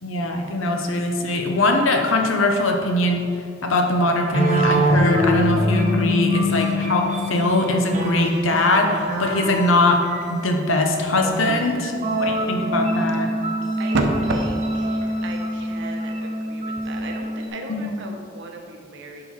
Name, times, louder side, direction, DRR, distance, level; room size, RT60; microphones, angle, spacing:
voice 1, 0.0-3.3 3.6-10.0 10.3-11.9 12.2-13.3 17.8-17.9, left 1 dB, 70° left, 3 dB, 0.9 m, -21 dB
sound 1, 4.3-10.5 11.2-17.5, equal, 35° right, 1.1 m, -24 dB
voice 2, 13.8-19.2, right 1 dB, 65° right, 2 dB, 0.9 m, -31 dB
10.5 x 3.9 x 4.3 m, 2.3 s
head